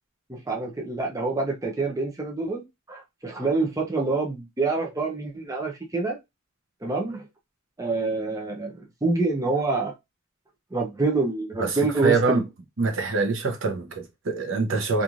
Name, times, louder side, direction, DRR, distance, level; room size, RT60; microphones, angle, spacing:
voice 1, 0.3-6.2 6.8-7.3 7.8-9.9 10.7-12.4, right 3 dB, 15° right, 0.5 m, -26 dB
voice 2, 11.6-12.4 12.8-15.0, right 4 dB, 70° right, 0.7 m, -25 dB
2.9 x 2.5 x 2.4 m
head